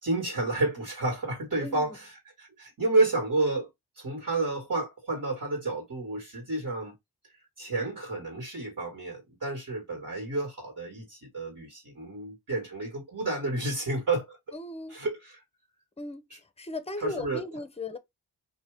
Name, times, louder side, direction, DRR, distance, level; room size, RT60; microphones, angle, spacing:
voice 1, 0.0-3.7 4.0-6.9 7.6-14.4 14.9-15.4 16.3-16.4 17.0-17.4, right 2 dB, 50° right, 1.5 m, -30 dB
voice 2, 1.6-2.0 14.5-15.0 16.0-18.0, left 2 dB, 15° left, 0.6 m, -37 dB
2.7 x 2.2 x 3.2 m
cardioid pair, 45°, 39 cm